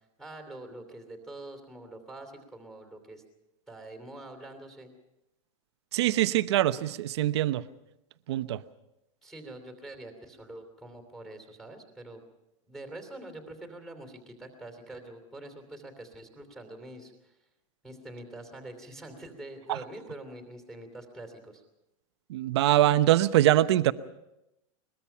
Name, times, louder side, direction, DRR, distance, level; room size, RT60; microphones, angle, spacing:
voice 1, 0.2-3.2 3.7-4.9 9.2-12.2 12.7-17.4 17.8-21.6, right 2 dB, ahead, 5 dB, 2.9 m, -45 dB
voice 2, 5.9-7.6 8.3-8.6 19.7-19.8 22.3-23.9, right 14 dB, 55° right, 12 dB, 0.8 m, -23 dB
22.0 x 21.5 x 5.7 m, 0.89 s
supercardioid pair, 180°, 17 cm